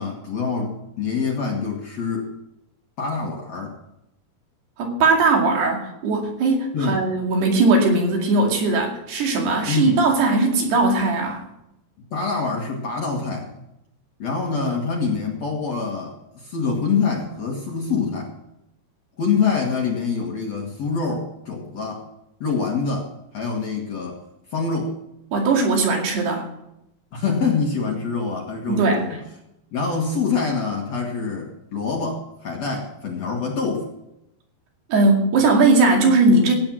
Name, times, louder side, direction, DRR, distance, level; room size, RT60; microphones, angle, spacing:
voice 1, 0.0-2.3 3.0-3.7 6.7-7.1 9.7-10.0 12.1-13.5 14.2-18.3 19.2-22.1 22.4-24.2 24.5-25.0 27.1-29.2 29.7-33.9, left 5 dB, 50° left, 0 dB, 2.2 m, -25 dB
voice 2, 4.8-11.4 25.3-26.5 28.7-29.0 34.9-36.5, right 3 dB, 70° right, 1 dB, 4.4 m, -19 dB
17.0 x 9.0 x 6.2 m, 0.85 s
omnidirectional pair, 4.8 m